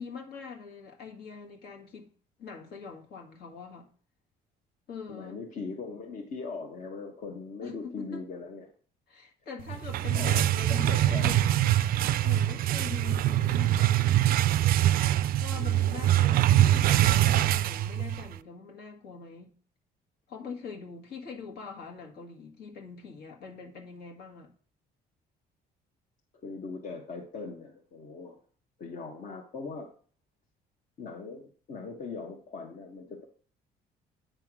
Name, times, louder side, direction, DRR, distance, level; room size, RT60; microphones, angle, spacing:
voice 1, 0.0-2.1 2.4-3.9 4.9-5.4 7.6-8.2 9.1-11.6 12.2-13.9 15.4-19.5 20.3-24.5, left 5 dB, 70° left, 1.8 m, -43 dB
voice 2, 5.1-8.7 10.1-11.3 15.5-15.9 26.4-28.4 28.8-29.9 31.0-33.2, left 4 dB, 55° left, 1.2 m, -40 dB
sound 1, 9.7-18.4, right 13 dB, 60° right, 0.4 m, -24 dB
9.0 x 3.5 x 6.1 m
cardioid pair, 110°, 17 cm